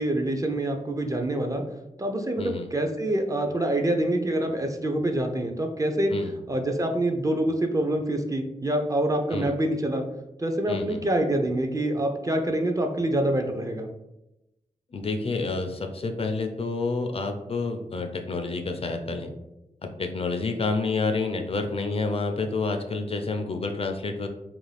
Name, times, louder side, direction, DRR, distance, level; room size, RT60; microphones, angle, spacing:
voice 1, 0.0-1.6 2.0-6.1 6.5-10.1 10.4-13.9, right 1 dB, 25° right, 4 dB, 0.4 m, -26 dB
voice 2, 2.4-2.7 6.1-6.3 9.3-9.6 10.7-11.0 14.9-19.3 19.8-24.3, left 3 dB, 45° left, 5 dB, 0.4 m, -29 dB
2.5 x 2.3 x 3.2 m, 0.92 s
cardioid pair, 65°, 14 cm